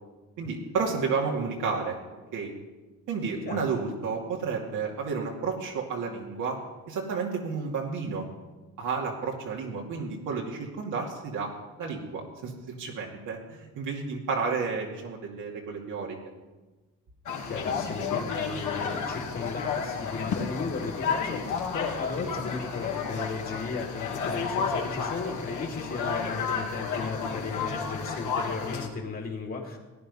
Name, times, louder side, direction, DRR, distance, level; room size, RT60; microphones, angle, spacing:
voice 1, 0.4-2.0 2.3-2.5 3.1-6.6 6.9-8.3 8.8-11.5 11.8-16.2, right 5 dB, 85° right, -1 dB, 2.4 m, -31 dB
sound 1, 17.3-28.9, left 5 dB, 75° left, 2.2 m, -32 dB
voice 2, 17.4-29.8, left 4 dB, 45° left, 0 dB, 2.5 m, -35 dB
17.0 x 9.6 x 5.5 m, 1.2 s
cardioid pair, 90°, 30 cm